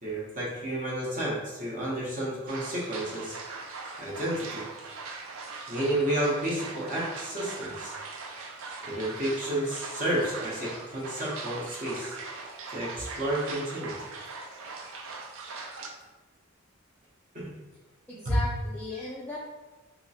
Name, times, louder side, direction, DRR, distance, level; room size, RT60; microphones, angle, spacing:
voice 1, 0.0-3.4 4.0-4.6 5.7-7.9 8.8-12.2 12.7-13.9 17.3-17.5 18.3-18.4, right 1 dB, 40° right, -6 dB, 0.8 m, -31 dB
sound 1, 2.5-15.9, right 4 dB, 65° right, 0.4 m, -40 dB
voice 2, 18.1-19.4, left 2 dB, 10° left, -6 dB, 0.3 m, -37 dB
3.1 x 2.8 x 2.7 m, 1.2 s
head